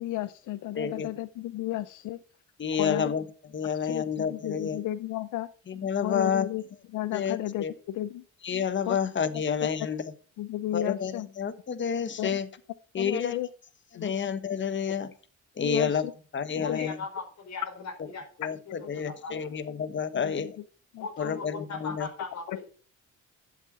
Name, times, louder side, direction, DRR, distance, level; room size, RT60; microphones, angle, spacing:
voice 1, 0.0-2.2 2.7-3.1 3.8-5.5 6.0-6.6 6.9-8.2 8.9-9.0 9.3-9.4 10.4-11.3 12.2-12.4 13.0-13.5 13.9-14.1 15.6-16.0 16.5-16.9 18.8-18.9 19.3-19.4 20.1-20.5 20.9-21.4 22.5-22.6, left 14 dB, 80° left, 15 dB, 0.6 m, -33 dB
voice 2, 0.8-1.1 2.6-3.2 3.5-4.8 5.7-6.5 7.1-7.7 8.4-10.0 10.7-12.5 12.9-13.4 13.9-15.1 15.6-16.1 16.3-17.0 18.4-20.6 21.2-22.1, left 7 dB, 40° left, 12 dB, 1.2 m, -29 dB
voice 3, 16.5-18.2 18.7-19.5 21.0-22.4, left 4 dB, 65° left, 3 dB, 4.9 m, -39 dB
11.0 x 7.8 x 4.8 m, 0.40 s
cardioid pair, 90°, 30 cm